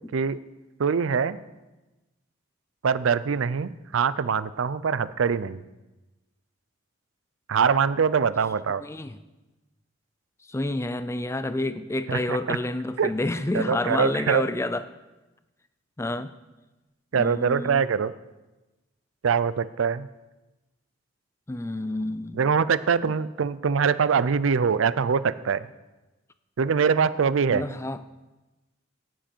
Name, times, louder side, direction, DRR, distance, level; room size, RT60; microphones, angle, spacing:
voice 1, 0.8-1.4 2.8-5.6 7.5-8.8 12.1-12.6 13.0-13.1 13.5-14.4 17.1-18.1 19.2-20.1 22.3-25.6 26.6-27.7, right 6 dB, 80° right, 16 dB, 0.4 m, -23 dB
voice 2, 8.8-9.2 10.5-14.8 16.0-16.3 17.1-17.9 21.5-22.4 23.0-23.1 27.5-28.0, left 2 dB, 15° left, 12 dB, 0.4 m, -29 dB
17.0 x 7.5 x 4.5 m, 1.1 s
head